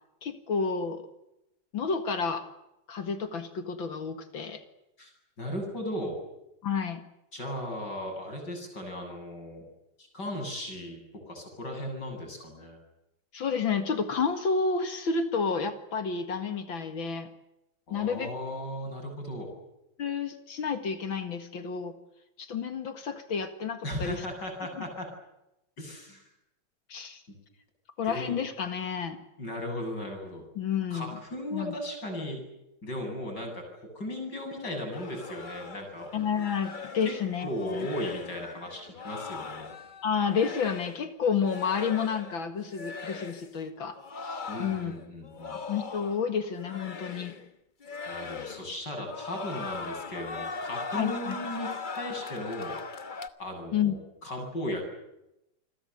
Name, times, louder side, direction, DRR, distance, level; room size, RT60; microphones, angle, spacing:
voice 1, 0.2-1.0 1.7-2.5 2.9-4.6 6.6-7.0 13.3-17.3 17.9-18.3 20.0-21.9 22.4-24.2 24.8-24.9 26.9-27.2 28.0-29.2 30.6-31.2 31.5-31.7 36.1-37.9 40.0-44.9 45.5-47.3 48.4-48.5 50.9-51.4 53.7-53.9, left 6 dB, 70° left, 8 dB, 2.6 m, -30 dB
voice 2, 5.4-6.2 7.3-9.7 10.0-12.8 17.9-19.5 23.8-25.1 25.8-26.2 28.0-28.4 29.4-30.4 30.9-32.4 32.8-36.1 37.1-37.2 37.4-39.7 44.5-45.5 48.1-52.8 53.4-54.8, left 1 dB, 55° left, 3 dB, 8.6 m, -36 dB
sound 1, 34.9-41.1 41.4-42.4 42.7-43.5 43.9-46.3 46.6-47.5 47.8-48.8 49.0-53.3, left 4 dB, 30° left, 1.0 m, -40 dB
28.5 x 22.0 x 8.1 m, 0.87 s
omnidirectional pair, 2.2 m